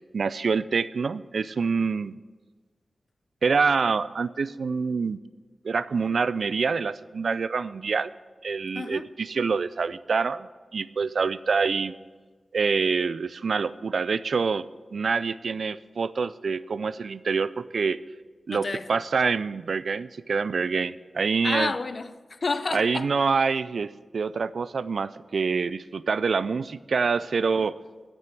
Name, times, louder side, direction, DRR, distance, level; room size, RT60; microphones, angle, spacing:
voice 1, 0.0-2.1 3.4-5.2 5.6-8.1 8.4-11.9 12.5-14.6 14.9-18.0 18.5-21.7 22.7-27.8, right 5 dB, 70° right, 0.3 m, -26 dB
voice 2, 8.7-9.1 18.5-18.9 21.4-23.1, left 3 dB, 50° left, 0.6 m, -30 dB
8.9 x 7.6 x 7.2 m
wide cardioid pair, 75°, 0 cm